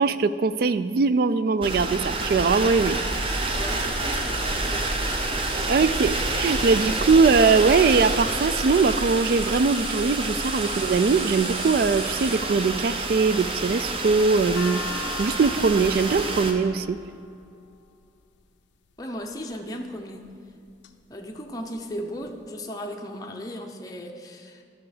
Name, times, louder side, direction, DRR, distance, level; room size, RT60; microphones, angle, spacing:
voice 1, 0.0-3.0 5.7-14.8 15.2-17.0, right 4 dB, 50° right, 13 dB, 0.3 m, -21 dB
sound 1, 1.6-16.5, right 2 dB, 30° right, 0.7 m, -28 dB
sound 2, 2.1-12.4, right 5 dB, 80° right, 0.9 m, -40 dB
voice 2, 3.6-5.3 5.7-6.1 19.0-20.2 21.1-24.6, equal, 20° left, 1 dB, 0.6 m, -36 dB
sound 3, 14.1-18.3 19.2-19.6 20.2-20.9 21.2-21.3 21.5-22.3, left 6 dB, 75° left, 0.5 m, -40 dB
11.5 x 5.8 x 5.0 m, 2.4 s
head